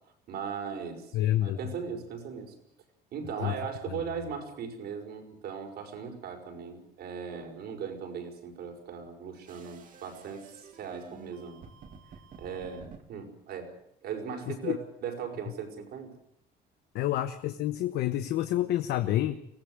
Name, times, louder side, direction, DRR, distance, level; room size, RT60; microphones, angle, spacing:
voice 1, 0.3-2.6 3.1-11.6 12.4-13.7 14.0-16.1, right 6 dB, 70° right, 3 dB, 5.6 m, -38 dB
voice 2, 1.1-1.6 3.4-3.5 14.5-14.8 16.9-19.4, left 13 dB, 80° left, 10 dB, 1.2 m, -28 dB
sound 1, 9.5-13.0, right 5 dB, 50° right, 2.7 m, -51 dB
24.0 x 16.5 x 8.0 m, 0.75 s
cardioid pair, 110°, 17 cm